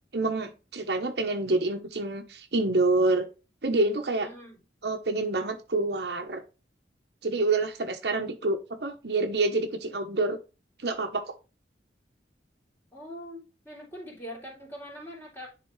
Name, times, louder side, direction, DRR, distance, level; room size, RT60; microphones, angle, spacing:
voice 1, 0.1-3.3 3.6-4.3 4.8-6.4 7.2-10.4 10.8-11.3, right 2 dB, 65° right, 5 dB, 1.0 m, -27 dB
voice 2, 4.1-4.6 12.9-15.5, equal, 15° left, -2 dB, 3.3 m, -43 dB
10.5 x 3.8 x 3.2 m, 0.30 s
head